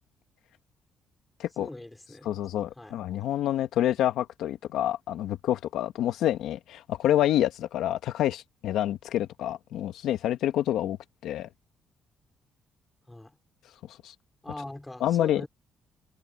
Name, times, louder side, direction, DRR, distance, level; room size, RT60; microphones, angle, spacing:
voice 1, 1.6-2.4 2.8-3.0 13.1-13.4 14.4-15.5, left 1 dB, 10° left, 5.5 m, -42 dB
voice 2, 2.3-11.0 11.2-11.5 14.0-14.1 15.0-15.4, left 12 dB, 85° left, 1.9 m, -27 dB
cardioid pair, 90°, 0 cm